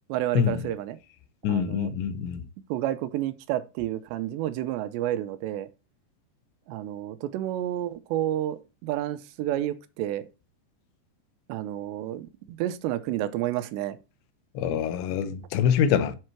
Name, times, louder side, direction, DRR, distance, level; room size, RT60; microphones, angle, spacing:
voice 1, 0.1-1.0 1.4-1.9 2.7-5.7 6.7-10.3 11.5-14.0, right 13 dB, 80° right, 2.8 m, -30 dB
voice 2, 1.4-2.4 14.6-16.2, left 8 dB, 85° left, 3.1 m, -25 dB
7.7 x 5.4 x 4.5 m
omnidirectional pair, 5.1 m